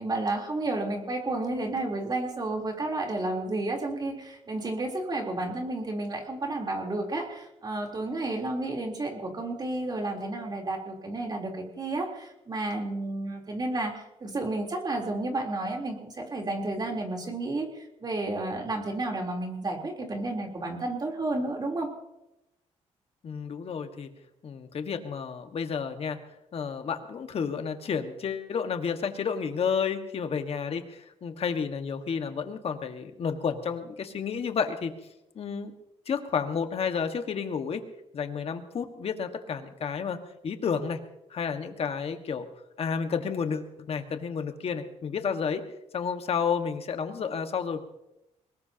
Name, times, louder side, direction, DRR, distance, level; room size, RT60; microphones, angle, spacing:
voice 1, 0.0-21.9, right 2 dB, 35° right, 1 dB, 3.6 m, -31 dB
voice 2, 23.2-24.1 24.4-26.2 26.5-34.9 35.4-35.7 36.1-37.8 38.1-41.0 41.3-42.5 42.8-45.7 45.9-47.8, left 6 dB, 50° left, 7 dB, 1.6 m, -31 dB
23.0 x 20.0 x 2.9 m, 0.88 s
cardioid pair, 100°, 13 cm